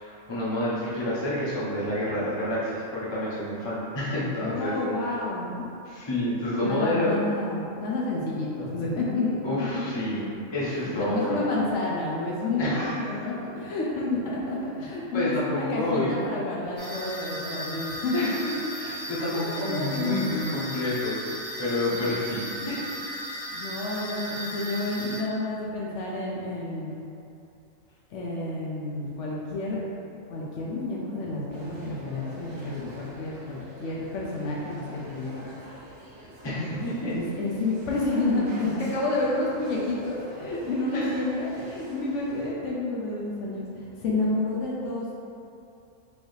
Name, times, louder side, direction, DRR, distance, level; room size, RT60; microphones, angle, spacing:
voice 1, 0.0-4.8 5.9-7.2 9.4-10.2 10.5-11.4 12.6-13.0 15.1-16.2 18.1-18.4 18.8-21.2 21.6-22.9 36.4-37.1 40.9-41.2, left 1 dB, 25° left, -8 dB, 0.7 m, -29 dB
voice 2, 4.4-5.7 6.6-9.4 10.6-18.3 19.2-20.3 21.9-22.1 22.4-22.7 23.5-27.0 28.1-29.8 30.3-35.3 36.5-45.1, left 2 dB, 70° left, -4 dB, 0.9 m, -30 dB
sound 1, 16.8-25.2, equal, 80° right, 1.8 m, -36 dB
sound 2, 31.5-42.5, right 1 dB, 45° right, 0.9 m, -45 dB
4.6 x 2.7 x 3.2 m, 2.6 s
omnidirectional pair, 1.3 m